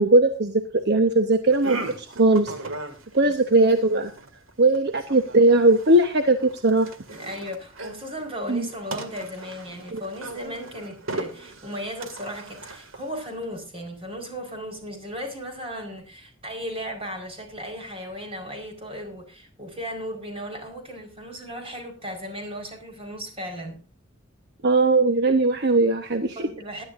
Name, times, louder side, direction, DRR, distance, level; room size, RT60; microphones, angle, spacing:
voice 1, 0.0-2.5 3.1-4.1 4.6-6.9 8.5-8.7 9.9-10.0 24.6-26.5, right 2 dB, 55° right, 1.1 m, -19 dB
sound 1, 1.5-13.4, right 2 dB, 80° right, 2.2 m, -38 dB
voice 2, 7.1-23.8 26.4-26.8, equal, 30° right, 4.7 m, -36 dB
20.5 x 11.0 x 2.6 m
head